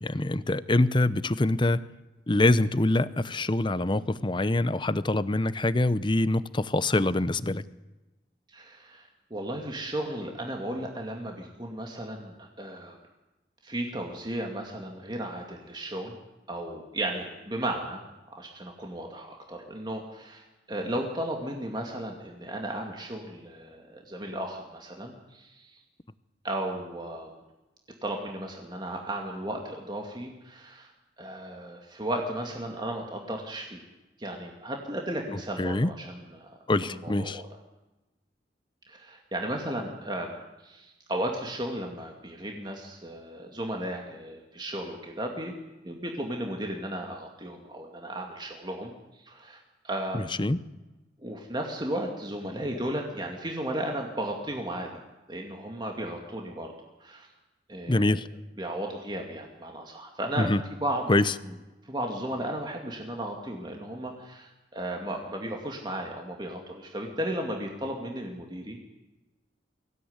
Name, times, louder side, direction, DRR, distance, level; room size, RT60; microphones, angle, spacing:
voice 1, 0.0-1.8 2.3-7.6 35.6-35.9 36.7-37.4 50.4-50.6 57.9-58.3 60.4-60.6 61.1-61.2, left 2 dB, 25° left, 15 dB, 0.8 m, -24 dB
voice 2, 8.5-13.0 13.6-16.2 16.5-18.0 18.3-25.8 26.4-27.3 28.0-30.9 31.2-33.8 34.2-36.5 36.8-37.5 38.9-40.4 40.6-45.6 45.8-50.4 51.2-54.9 55.3-56.7 57.0-57.3 57.7-58.2 58.6-61.1 61.4-61.6 61.8-68.8, right 1 dB, 25° right, 1 dB, 2.3 m, -35 dB
23.5 x 17.0 x 9.7 m, 1.1 s
head